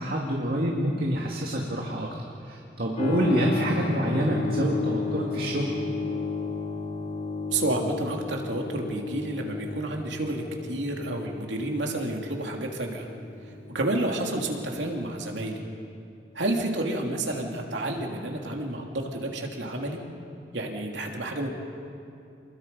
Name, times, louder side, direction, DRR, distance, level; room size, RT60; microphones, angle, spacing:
voice 1, 0.0-2.1 2.4-5.8, equal, 55° right, -1 dB, 2.1 m, -27 dB
Keyboard (musical), 2.9-15.4, left 4 dB, 40° left, 3.0 m, -34 dB
voice 2, 7.5-13.1 13.4-15.6 16.3-20.0 20.5-21.5, right 1 dB, 85° right, 1 dB, 2.8 m, -30 dB
28.0 x 21.5 x 5.4 m, 2.6 s
head